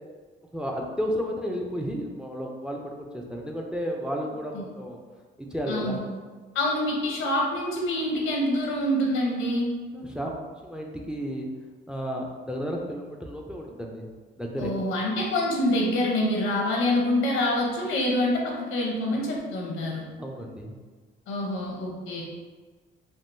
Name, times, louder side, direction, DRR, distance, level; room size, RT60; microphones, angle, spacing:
voice 1, 0.5-5.0 5.4-6.0 9.9-11.5 11.9-14.1 14.4-14.7 20.2-20.8, equal, 5° right, 1 dB, 0.4 m, -32 dB
voice 2, 5.7-6.1 6.5-9.7 14.6-20.0 21.3-22.2, left 1 dB, 85° left, -1 dB, 0.8 m, -26 dB
3.5 x 2.3 x 2.6 m, 1.4 s
cardioid pair, 90°, 20 cm